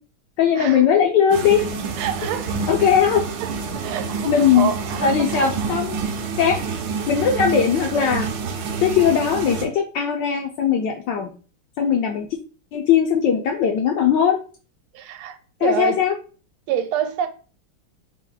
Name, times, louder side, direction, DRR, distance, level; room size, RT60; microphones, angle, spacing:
voice 1, 0.4-1.6 2.7-3.2 4.2-4.7 5.0-6.0 6.4-6.6 7.1-8.3 8.8-11.3 11.8-12.3 12.7-14.4 15.6-16.1, left 8 dB, 75° left, 1.0 m, -19 dB
sound 1, 1.3-9.6, right 5 dB, 70° right, 1.2 m, -28 dB
voice 2, 2.0-2.6 3.4-3.5 3.8-5.8 14.9-16.0 16.7-17.3, right 8 dB, 90° right, 1.5 m, -27 dB
4.4 x 2.1 x 3.8 m
omnidirectional pair, 2.4 m